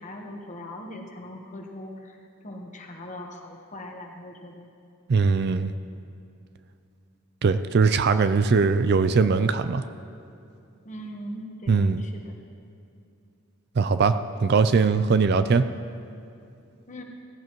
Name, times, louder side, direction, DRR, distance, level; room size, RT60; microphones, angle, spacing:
voice 1, 0.0-2.2 2.4-4.7 10.8-12.3 16.9-17.0, left 1 dB, 35° left, 1 dB, 1.2 m, -40 dB
voice 2, 5.1-5.7 7.4-9.8 11.7-12.0 13.8-14.2 14.4-15.6, right 4 dB, 50° right, 11 dB, 0.4 m, -20 dB
16.0 x 15.5 x 3.1 m, 2.6 s
head